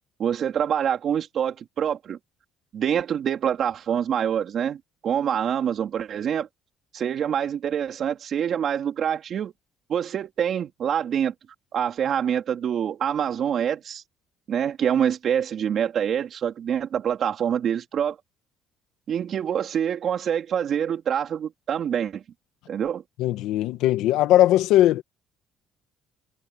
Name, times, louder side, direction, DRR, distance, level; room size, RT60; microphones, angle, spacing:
voice 1, 0.2-2.2 2.7-6.5 6.9-9.5 9.9-11.3 11.7-14.0 14.5-18.2 19.1-22.2 22.7-23.0, right 8 dB, 45° right, 3.7 m, -25 dB
voice 2, 23.2-25.0, left 14 dB, 85° left, 1.4 m, -19 dB
cardioid pair, 140°, 0 cm